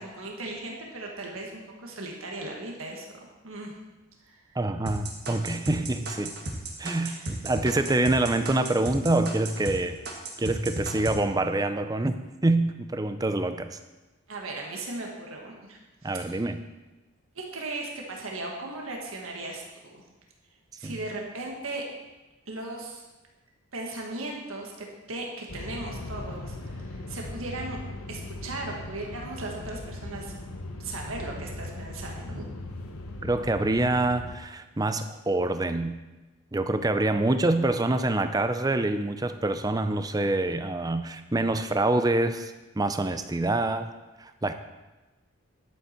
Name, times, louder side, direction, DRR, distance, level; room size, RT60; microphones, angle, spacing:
voice 1, 0.0-3.7 4.2-4.6 7.0-7.3 14.3-16.4 17.3-20.0 20.8-21.8 22.5-23.0 23.7-27.8 28.1-30.3 30.8-32.5, right 2 dB, 70° right, 0 dB, 1.6 m, -37 dB
voice 2, 4.6-6.4 6.8-10.0 10.4-13.8 16.0-16.6 20.8-21.0 33.2-36.0 36.5-43.9 44.2-44.5, right 2 dB, 15° right, 9 dB, 0.5 m, -26 dB
sound 1, 4.9-9.8 10.1-11.2, right 2 dB, 50° right, 1.7 m, -34 dB
sound 2, 25.5-34.4, left 2 dB, 80° left, 1.0 m, -39 dB
11.0 x 8.3 x 4.4 m, 1.1 s
head